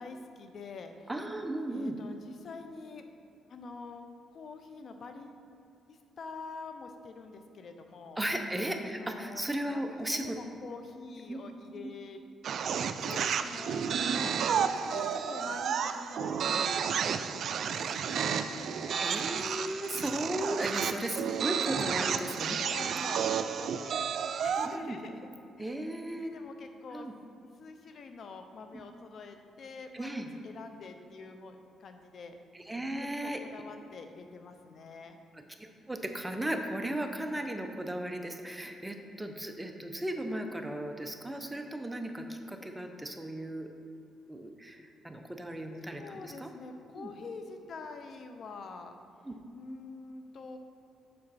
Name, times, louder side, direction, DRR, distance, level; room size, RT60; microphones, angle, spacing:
voice 1, 0.0-1.1 1.7-3.0 3.5-4.0 4.3-5.4 5.9-8.2 8.8-9.5 9.7-12.2 13.0-14.4 14.7-19.2 21.4-23.9 24.4-25.2 25.6-27.1 27.6-32.4 33.0-35.2 45.8-48.9 49.5-50.6, left 4 dB, 55° left, 6 dB, 0.7 m, -46 dB
voice 2, 1.1-1.9 8.2-10.4 11.3-11.4 11.8-11.9 14.1-14.3 19.0-22.9 24.6-25.0 25.6-26.3 26.9-27.1 28.7-28.8 29.9-30.3 32.5-33.4 35.3-43.7 44.3-46.5 46.9-47.1 49.2-49.3, right 1 dB, 10° right, 4 dB, 0.7 m, -36 dB
sound 1, 12.4-24.8, right 7 dB, 65° right, 0.3 m, -31 dB
7.7 x 5.7 x 4.2 m, 2.6 s
cardioid pair, 90°, 0 cm